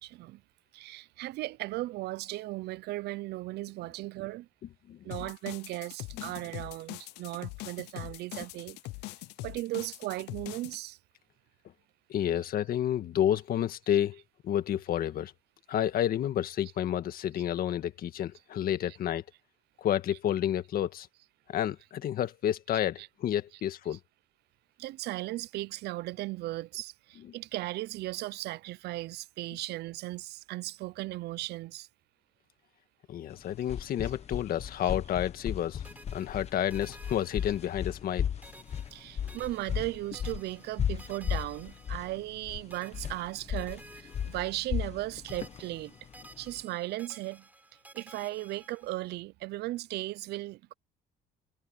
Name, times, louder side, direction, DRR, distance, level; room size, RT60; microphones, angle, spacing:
voice 1, 0.0-0.4 0.7-4.5 5.0-8.8 9.4-11.0 13.9-14.0 16.6-16.7 17.3-17.4 18.9-19.0 20.1-20.2 23.0-23.1 23.5-23.6 23.9-24.0 24.8-31.9 34.0-34.1 34.8-34.9 37.5-37.6 38.9-45.9 46.4-47.5 47.9-50.7, right 18 dB, 75° right, 0.6 m, -37 dB
voice 2, 4.9-5.3 6.2-6.3 12.1-15.3 15.7-19.2 19.8-21.1 21.5-24.0 33.1-35.8 36.1-38.3, left 11 dB, 60° left, 1.7 m, -30 dB
sound 1, 5.1-10.8, left 20 dB, 90° left, 0.6 m, -42 dB
sound 2, 33.3-46.6, left 8 dB, 40° left, 1.0 m, -36 dB
sound 3, 35.8-38.1 38.4-42.4 42.7-45.0 45.3-49.1, right 2 dB, 10° right, 5.4 m, -54 dB
cardioid pair, 110°, 17 cm